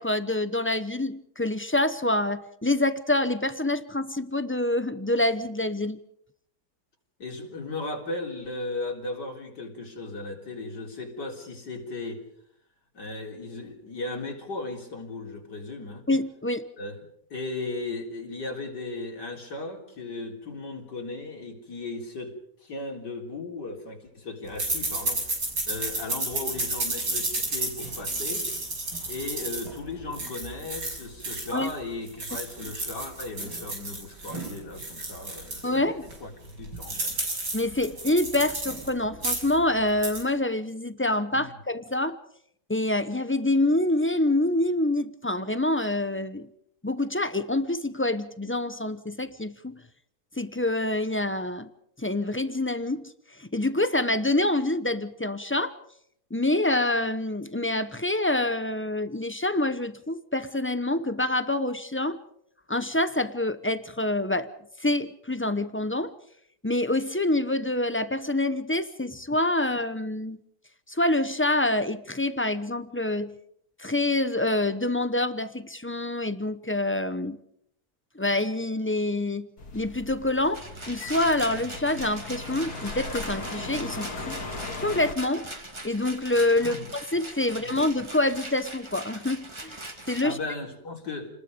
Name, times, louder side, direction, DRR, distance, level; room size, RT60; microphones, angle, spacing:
voice 1, 0.0-6.0 16.1-16.7 31.5-31.7 35.6-36.0 37.5-42.2 42.7-46.5 46.8-49.8 50.4-51.7 52.0-53.1 53.4-55.7 56.3-62.2 62.7-64.5 64.8-66.1 66.6-70.4 70.9-73.4 73.8-77.4 78.1-79.5 79.7-84.4 84.8-85.5 85.8-86.8 87.1-89.8 90.1-90.4, left 1 dB, 15° left, 12 dB, 0.4 m, -26 dB
voice 2, 7.2-12.2 12.9-16.1 16.8-17.0 17.3-22.3 22.6-25.2 25.7-28.5 29.1-37.2 41.3-41.6 86.6-86.9 87.5-87.7 90.2-91.3, left 3 dB, 85° left, 1 dB, 4.3 m, -36 dB
sound 1, 24.6-31.7 32.1-35.7 36.1-36.2 36.4-38.9 39.1-39.6 39.9-40.2, right 2 dB, 90° right, 6.7 m, -32 dB
sound 2, 79.6-85.1, left 3 dB, 65° left, 2.7 m, -38 dB
Rattle, 80.5-90.2, right 1 dB, 15° right, 2.3 m, -41 dB
29.5 x 20.5 x 5.2 m, 0.72 s
omnidirectional pair, 1.8 m